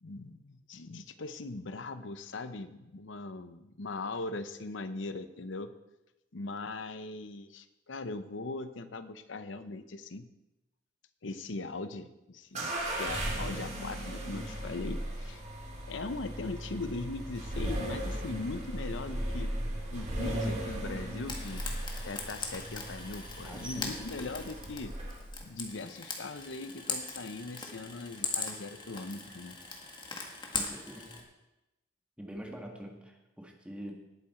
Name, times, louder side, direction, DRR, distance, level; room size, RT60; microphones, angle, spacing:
voice 1, 0.0-5.7 6.3-10.3 11.2-15.4 15.9-19.5 19.9-21.6 22.0-24.9 25.4-29.6, left 3 dB, 80° left, 11 dB, 0.8 m, -40 dB
sound 1, 12.5-25.4, right 1 dB, 40° right, 3.2 m, -37 dB
Frying (food), 21.3-31.2, left 4 dB, 25° left, 1.7 m, -40 dB
voice 2, 23.4-24.0 28.2-28.3 30.5-31.1 32.2-33.9, equal, 5° right, 1 dB, 1.8 m, -44 dB
19.0 x 8.6 x 4.4 m, 0.98 s
head